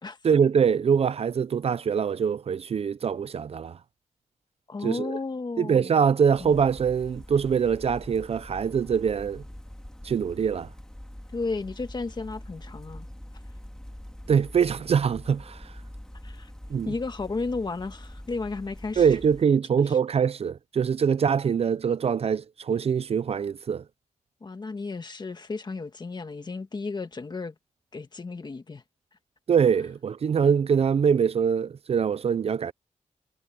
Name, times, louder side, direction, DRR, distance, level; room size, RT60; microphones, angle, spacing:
voice 1, 0.2-3.8 4.8-5.2 5.6-9.4 10.0-10.7 14.3-15.7 16.7-16.9 19.0-23.8 29.5-32.7, right 7 dB, 50° right, 0.4 m, -24 dB
voice 2, 4.7-6.0 6.4-6.6 11.3-13.1 16.2-16.5 16.8-19.1 19.8-20.0 24.4-27.5 27.9-28.8, left 3 dB, 35° left, 1.5 m, -33 dB
sound 1, 6.3-19.4, left 1 dB, 5° left, 1.9 m, -44 dB
wide cardioid pair, 160°, 13 cm